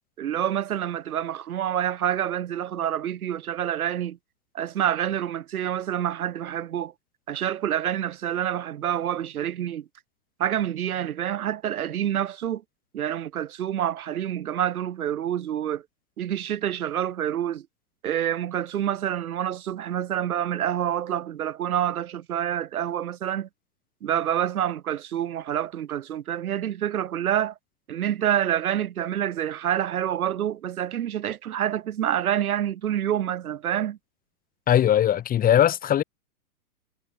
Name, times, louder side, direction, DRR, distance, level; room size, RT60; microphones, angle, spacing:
voice 1, 0.2-4.2 4.5-6.9 7.3-9.9 10.4-12.6 12.9-15.8 16.2-17.7 18.0-23.5 24.0-27.5 27.9-34.0, right 10 dB, 65° right, 2.2 m, -27 dB
voice 2, 34.7-36.0, left 10 dB, 20° left, 3.1 m, -20 dB
hypercardioid pair, 135°, 46 cm